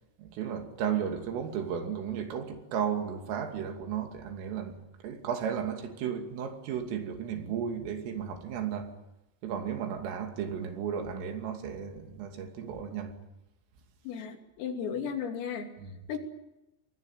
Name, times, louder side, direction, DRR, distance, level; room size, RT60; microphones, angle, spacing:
voice 1, 0.2-4.8 5.0-8.9 9.4-13.1 15.8-15.9, right 8 dB, 75° right, 5.2 m, -34 dB
voice 2, 14.1-15.7 16.1-16.2, left 7 dB, 85° left, 5.6 m, -35 dB
26.5 x 20.5 x 9.2 m
omnidirectional pair, 5.9 m